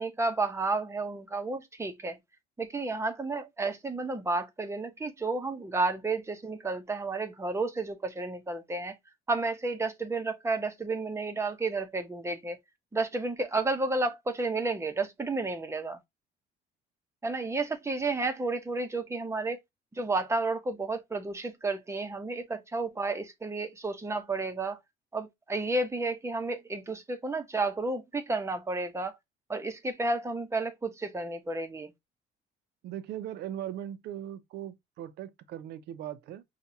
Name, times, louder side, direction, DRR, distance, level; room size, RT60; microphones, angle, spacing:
voice 1, 0.0-2.2 2.6-9.0 9.3-12.6 12.9-16.0 17.2-19.6 20.0-24.8 25.1-29.1 29.5-31.9, right 3 dB, 15° right, 0.9 m, -31 dB
voice 2, 32.8-36.4, right 11 dB, 75° right, 0.7 m, -39 dB
5.8 x 2.5 x 2.8 m
cardioid pair, 110°, 17 cm